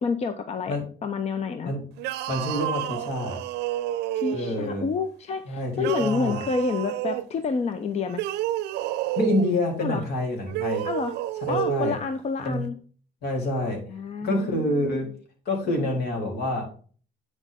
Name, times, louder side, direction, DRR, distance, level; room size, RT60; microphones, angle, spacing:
voice 1, 0.0-1.7 4.1-8.2 9.8-10.0 10.8-11.1 11.5-12.8 13.9-15.0 15.7-15.9 16.2-16.3, left 5 dB, 40° left, 9 dB, 0.7 m, -29 dB
sound 1, 2.0-4.7 5.8-7.3 8.1-9.6 10.5-11.9, right 14 dB, 85° right, 0.6 m, -30 dB
voice 2, 2.3-3.4 4.3-4.8 5.5-6.4 9.2-10.9 11.4-12.0 12.4-12.6 13.2-13.9 14.2-15.1 15.5-16.7, left 1 dB, 70° left, 1 dB, 3.5 m, -27 dB
8.2 x 6.3 x 3.6 m, 0.42 s
cardioid pair, 110°, 17 cm